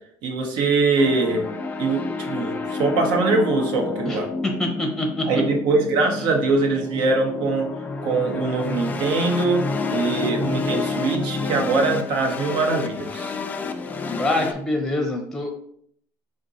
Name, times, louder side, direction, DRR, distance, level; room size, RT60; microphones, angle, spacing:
voice 1, 0.2-1.4 1.8-4.3 5.2-7.7 8.0-13.3, right 3 dB, 70° right, 2 dB, 1.0 m, -22 dB
sound 1, 1.0-14.5, left 3 dB, 20° left, 0.3 m, -29 dB
voice 2, 4.0-5.2 14.1-15.5, left 2 dB, 5° left, 2 dB, 0.7 m, -25 dB
3.8 x 2.6 x 4.0 m, 0.63 s
cardioid pair, 150°, 8 cm